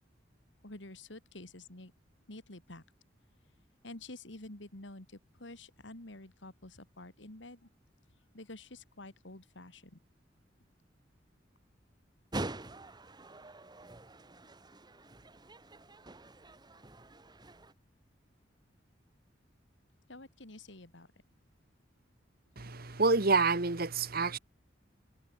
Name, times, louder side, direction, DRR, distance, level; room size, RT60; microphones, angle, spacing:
voice 1, 0.6-1.9 2.3-2.8 3.8-7.7 8.3-10.0 20.1-21.1, left 2 dB, 75° left, 3.3 m, -49 dB
sound 1, 12.3-17.7, right 2 dB, 25° right, 1.5 m, -45 dB
voice 2, 22.6-24.4, right 4 dB, 55° right, 1.6 m, -28 dB
head